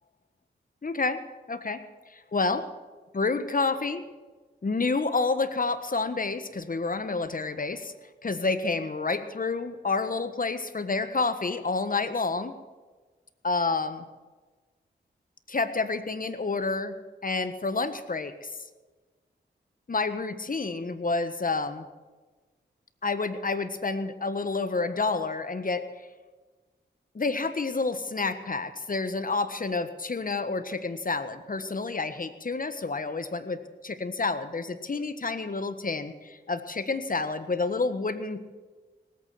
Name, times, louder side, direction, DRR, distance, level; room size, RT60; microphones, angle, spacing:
voice 1, 0.8-1.2 1.5-1.8 2.1-2.7 3.1-4.0 4.6-7.9 8.2-12.5 13.4-14.0 15.5-16.9 17.2-18.5 19.9-21.9 23.0-25.8 27.1-38.4, left 3 dB, 45° left, 11 dB, 1.4 m, -29 dB
19.0 x 8.7 x 7.6 m, 1.3 s
cardioid pair, 50°, 20 cm